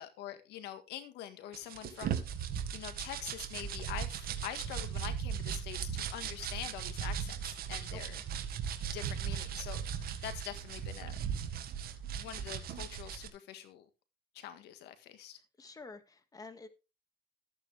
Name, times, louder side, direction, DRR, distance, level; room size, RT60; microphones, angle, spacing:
voice 1, 0.0-2.4 2.7-8.2 8.9-11.2 12.1-13.8 14.3-15.4, left 11 dB, 85° left, 1.7 m, -45 dB
sound 1, 1.5-13.3, right 8 dB, 65° right, 1.9 m, -38 dB
voice 2, 15.6-16.7, left 3 dB, 20° left, 2.0 m, -49 dB
14.0 x 9.0 x 3.5 m
cardioid pair, 110°, 17 cm